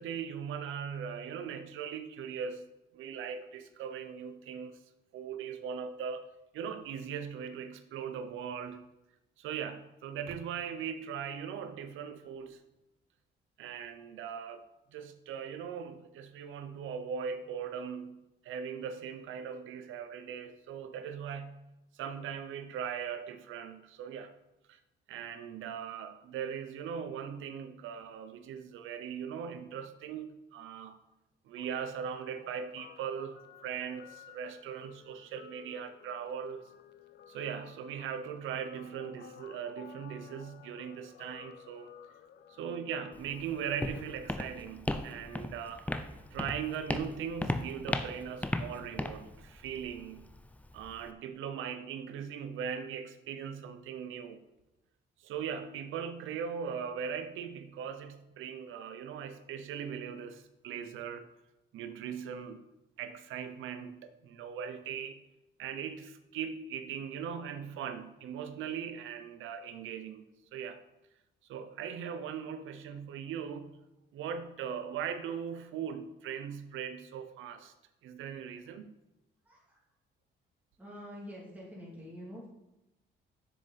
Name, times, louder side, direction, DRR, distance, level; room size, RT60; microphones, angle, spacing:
voice 1, 0.0-4.8 5.1-6.3 6.5-8.9 9.4-12.6 13.6-14.6 14.9-21.6 21.9-24.3 24.7-24.8 25.1-31.0 31.4-36.7 37.3-41.9 42.6-45.9 46.3-50.3 50.7-54.4 55.2-61.3 61.7-62.7 63.0-65.2 65.6-70.8 71.5-73.8 74.1-77.7 78.0-78.9, right 7 dB, 80° right, 11 dB, 0.7 m, -39 dB
Guitar, 31.6-44.3, left 8 dB, 60° left, 0.6 m, -55 dB
Walk footsteps, 43.1-51.1, left 1 dB, 5° left, 0.5 m, -37 dB
voice 2, 79.4-79.8 80.8-82.5, equal, 10° right, -5 dB, 2.5 m, -46 dB
6.7 x 6.4 x 4.1 m, 0.95 s
cardioid pair, 90°, 20 cm